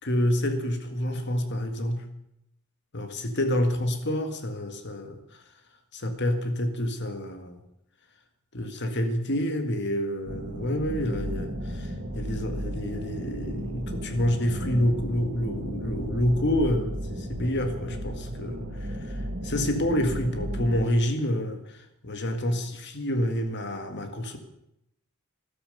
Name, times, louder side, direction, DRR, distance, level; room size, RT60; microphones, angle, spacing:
voice 1, 0.0-2.1 2.9-5.2 5.9-7.6 8.5-21.8 22.0-24.4, left 1 dB, 55° left, 7 dB, 1.9 m, -28 dB
sound 1, 10.3-20.8, equal, 50° right, 1.9 m, -34 dB
13.5 x 13.0 x 6.7 m, 0.80 s
head